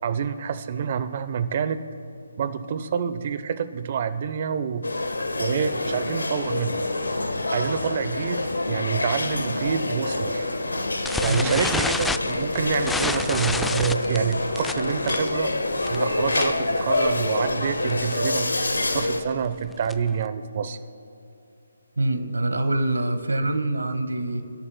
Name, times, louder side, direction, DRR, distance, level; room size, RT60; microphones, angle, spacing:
voice 1, 0.0-1.8 2.4-4.8 5.4-6.8 7.5-10.5 11.2-15.5 15.9-20.8, right 7 dB, 40° right, 12 dB, 0.8 m, -27 dB
sound 1, 4.8-19.2, left 2 dB, 80° left, 1.4 m, -26 dB
sound 2, 11.0-16.7 16.9-17.2 17.5-17.6 17.9-18.2 18.7-20.2, left 3 dB, 5° left, 0.4 m, -29 dB
voice 2, 22.0-24.4, right 2 dB, 75° right, 8 dB, 1.7 m, -25 dB
28.5 x 12.5 x 2.3 m, 2.8 s
figure-of-eight pair, 145°, 0 cm